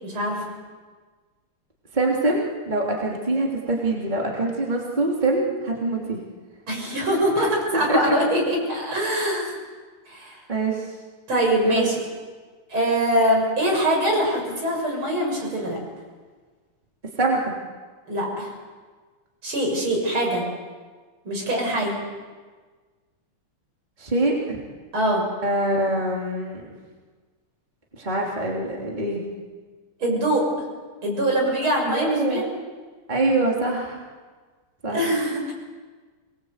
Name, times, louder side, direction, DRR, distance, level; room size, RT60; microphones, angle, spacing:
voice 1, 0.0-0.4 6.7-9.5 10.1-10.4 11.3-12.0 12.7-15.8 18.1-18.5 19.4-20.5 21.2-22.0 24.9-25.2 30.0-30.5 31.0-32.5 34.9-35.5, right 1 dB, 70° right, 0 dB, 7.8 m, -23 dB
voice 2, 1.9-6.2 7.4-8.1 10.5-10.9 11.6-11.9 17.2-17.4 24.0-24.6 25.4-26.7 28.0-29.2 31.9-32.4 33.1-34.0 34.8-35.0, right 2 dB, 20° right, -2 dB, 3.3 m, -24 dB
28.0 x 21.5 x 8.2 m, 1.4 s
omnidirectional pair, 2.4 m